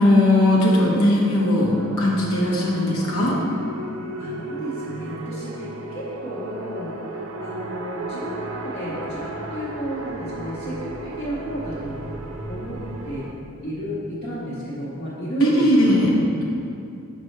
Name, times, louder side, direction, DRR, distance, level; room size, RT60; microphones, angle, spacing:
voice 1, 0.0-1.7 2.0-3.4 15.4-16.1, left 1 dB, 85° left, -4 dB, 1.3 m, -18 dB
sound 1, 1.6-13.3, right 2 dB, 75° right, 0.6 m, -34 dB
voice 2, 4.2-12.0 12.5-12.8 13.0-13.3 13.6-16.1, equal, 45° left, -8 dB, 0.9 m, -32 dB
6.7 x 5.2 x 3.2 m, 2.6 s
head